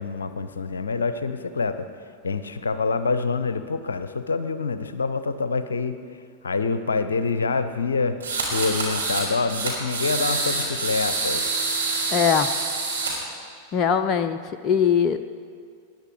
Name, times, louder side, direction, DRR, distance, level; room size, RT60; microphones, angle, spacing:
voice 1, 0.0-1.9 2.2-6.0 6.4-8.2 8.5-11.5, left 4 dB, 70° left, 11 dB, 0.7 m, -26 dB
sound 1, 8.2-9.2 9.5-13.1, right 3 dB, 75° right, 3.9 m, -26 dB
voice 2, 12.1-12.5 13.7-14.4 14.6-15.3, left 7 dB, 35° left, 9 dB, 0.5 m, -21 dB
20.0 x 10.5 x 4.7 m, 2.2 s
figure-of-eight pair, 90°, 0 cm